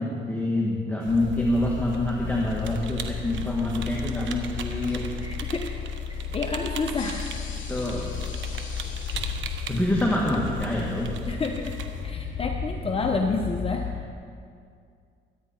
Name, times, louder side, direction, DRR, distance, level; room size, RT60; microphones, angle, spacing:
voice 1, 0.0-5.1 7.7-8.2 9.7-11.1 13.0-13.1, left 1 dB, 10° left, -4 dB, 1.9 m, -26 dB
sound 1, 1.0-12.1, right 7 dB, 75° right, 1.2 m, -42 dB
sound 2, 1.1-14.0, left 6 dB, 75° left, 2.4 m, -33 dB
sound 3, 1.4-7.4, left 2 dB, 45° right, 3.7 m, -48 dB
voice 2, 5.2-5.7 6.1-7.2 11.3-11.8 12.0-13.9, left 3 dB, 30° left, 2 dB, 0.9 m, -29 dB
23.0 x 9.6 x 4.4 m, 2.3 s
cardioid pair, 90°, 20 cm